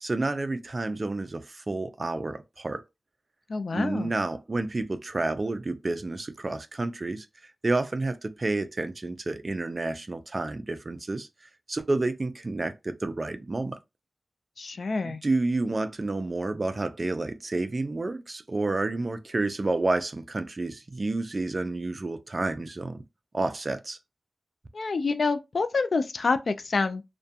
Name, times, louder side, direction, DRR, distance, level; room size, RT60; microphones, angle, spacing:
voice 1, 0.0-2.8 3.7-7.3 7.6-11.3 11.7-13.8 15.0-23.0 23.3-24.0, right 2 dB, 40° right, 0.3 m, -30 dB
voice 2, 3.5-4.1 14.6-15.2 24.7-27.0, left 4 dB, 70° left, 0.3 m, -27 dB
2.3 x 2.1 x 2.6 m
wide cardioid pair, 85°, 0 cm